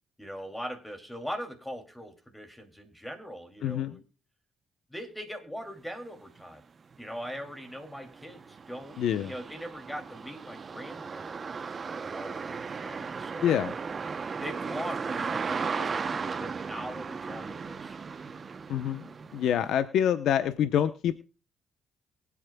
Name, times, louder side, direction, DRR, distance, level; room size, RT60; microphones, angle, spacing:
voice 1, 0.2-4.0 4.9-6.6 7.0-13.6 14.3-18.0, equal, 5° left, 5 dB, 2.6 m, -41 dB
voice 2, 3.6-4.0 9.0-9.3 13.4-13.7 18.7-19.0 19.3-21.1, left 9 dB, 80° left, 10 dB, 0.8 m, -26 dB
sound 1, 6.4-6.5 6.9-19.8, right 5 dB, 40° right, 0.7 m, -36 dB
23.5 x 8.6 x 2.3 m, 0.36 s
cardioid pair, 90°, 0 cm